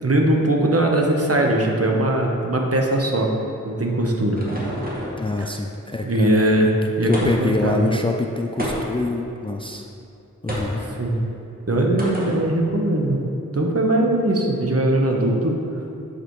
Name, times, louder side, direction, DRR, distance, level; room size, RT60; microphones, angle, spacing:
voice 1, 0.0-3.3 3.6-4.4 5.4-5.5 6.0-7.9 10.9-11.2 11.7-13.2 13.5-15.6, right 1 dB, 45° right, 1 dB, 1.0 m, -20 dB
sound 1, 3.7-5.2 7.1-7.6 8.6-9.1 10.5-10.9 12.0-12.4, equal, 25° right, 1.7 m, -29 dB
voice 2, 5.2-6.5 7.1-9.9 10.4-10.8, left 2 dB, 15° left, 3 dB, 0.4 m, -25 dB
10.0 x 5.0 x 3.2 m, 2.7 s
wide cardioid pair, 45°, 32 cm